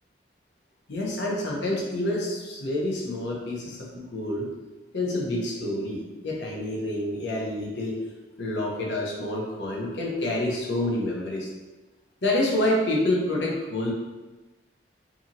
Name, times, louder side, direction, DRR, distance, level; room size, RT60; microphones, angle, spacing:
voice 1, 0.9-4.5 4.9-8.0 8.4-11.5 12.2-13.9, left 1 dB, 85° left, -2 dB, 0.7 m, -28 dB
2.8 x 2.6 x 2.5 m, 1.2 s
head